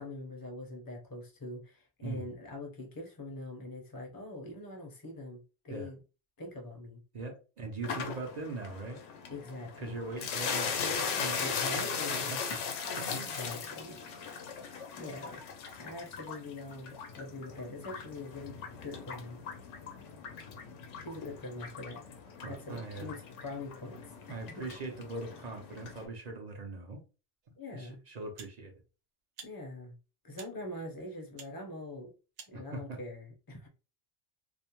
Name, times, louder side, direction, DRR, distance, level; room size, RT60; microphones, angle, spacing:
voice 1, 0.0-5.4 5.6-6.0 6.4-7.0 9.3-10.0 11.4-12.3 13.1-14.0 15.0-15.4 15.8-19.4 21.0-22.0 22.4-24.0 24.3-24.7 27.6-28.0 29.4-29.9 30.2-32.1 32.5-33.7, left 2 dB, 25° left, 0.5 m, -43 dB
voice 2, 7.1-9.0 9.8-12.6 12.9-13.4 22.4-23.1 24.3-27.0 27.7-28.7 32.5-33.0, right 3 dB, 55° right, 0.5 m, -41 dB
sound 1, 7.8-26.1, left 6 dB, 85° left, 0.9 m, -39 dB
sound 2, 27.4-27.6 28.4-28.6 29.3-29.5 30.3-30.5 31.4-31.5 32.3-32.6, right 6 dB, 85° right, 0.9 m, -50 dB
2.4 x 2.0 x 2.9 m
omnidirectional pair, 1.2 m